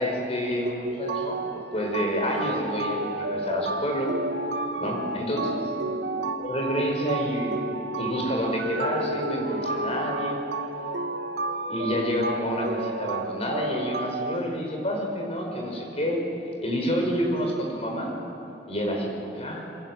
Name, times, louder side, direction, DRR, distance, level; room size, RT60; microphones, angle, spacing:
voice 1, 0.0-4.1 4.8-5.6 6.4-7.6 8.0-10.4 11.7-16.2 16.6-18.1 18.7-19.7, equal, 35° left, 1 dB, 5.3 m, -28 dB
sound 1, 0.7-14.4, right 2 dB, 80° right, 1.6 m, -31 dB
27.0 x 25.5 x 7.7 m, 2.9 s
head